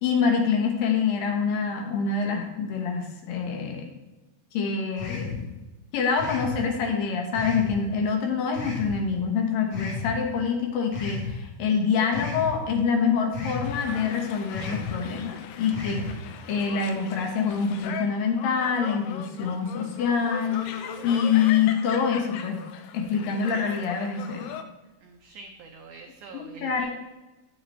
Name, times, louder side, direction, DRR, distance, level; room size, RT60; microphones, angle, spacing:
voice 1, 0.0-3.9 4.5-5.4 5.9-20.7 21.0-22.6 22.9-24.5 26.3-26.9, left 6 dB, 70° left, 2 dB, 2.8 m, -26 dB
sound 1, 5.0-5.4 6.2-6.6 7.3-7.7 8.5-8.9 9.7-10.1 10.9-11.3 12.1-12.5 13.3-13.7 14.5-14.9 15.7-16.1, left 5 dB, 40° left, 3.0 m, -33 dB
sound 2, 13.6-24.6, left 8 dB, 90° left, 2.6 m, -39 dB
voice 2, 25.0-26.9, right 4 dB, 90° right, 4 dB, 1.7 m, -45 dB
10.0 x 6.7 x 4.3 m, 1.1 s
omnidirectional pair, 4.4 m